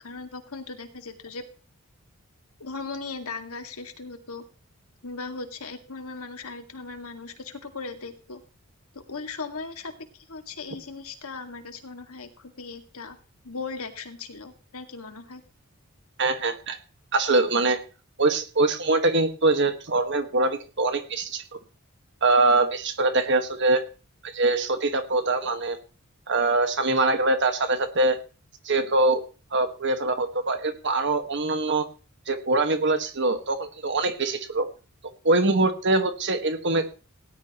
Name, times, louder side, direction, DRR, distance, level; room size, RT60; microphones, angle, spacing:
voice 1, 0.0-1.4 2.6-4.4 5.0-8.4 8.9-13.2 13.4-15.4, left 4 dB, 85° left, 6 dB, 2.1 m, -38 dB
voice 2, 16.2-16.8 17.1-17.8 18.2-21.4 22.2-23.8 24.2-25.8 26.3-28.2 28.6-29.2 29.5-31.9 32.3-34.7 35.2-36.9, right 2 dB, 55° right, 8 dB, 1.7 m, -23 dB
18.0 x 12.0 x 3.1 m, 0.35 s
head